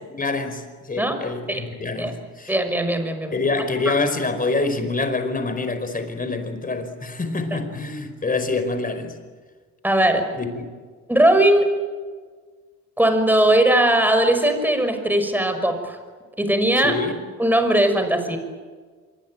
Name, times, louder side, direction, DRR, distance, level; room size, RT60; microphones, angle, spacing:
voice 1, 0.1-2.5 3.3-9.2 10.3-10.7 16.8-17.2, left 3 dB, 30° left, 5.0 m, -26 dB
voice 2, 2.5-3.3 9.8-10.2 11.1-11.6 13.0-16.0 16.4-16.9 17.4-18.4, right 1 dB, 5° right, 5.9 m, -19 dB
26.0 x 24.0 x 9.2 m
cardioid pair, 90°, 30 cm